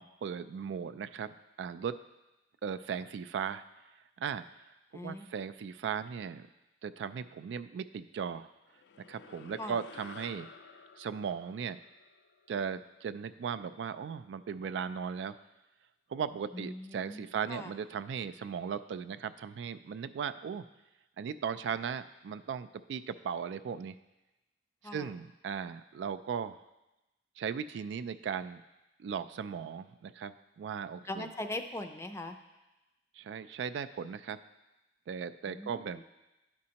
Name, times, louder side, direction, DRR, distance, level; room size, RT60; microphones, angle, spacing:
voice 1, 0.0-2.0 2.6-3.6 4.2-4.4 4.9-6.5 6.8-8.5 9.1-10.5 11.0-11.8 12.5-15.3 16.1-20.6 21.2-24.0 24.9-26.6 27.4-28.6 29.0-31.3 33.2-34.4 35.1-36.0, right 7 dB, 85° right, 11 dB, 0.3 m, -37 dB
voice 2, 4.9-5.3 9.6-9.8 16.5-17.7 24.8-25.1 31.1-32.4 35.4-36.0, left 1 dB, 15° left, 7 dB, 0.4 m, -41 dB
sound 1, 8.7-13.4, left 5 dB, 85° left, 0.4 m, -53 dB
11.5 x 5.2 x 2.9 m, 1.0 s
head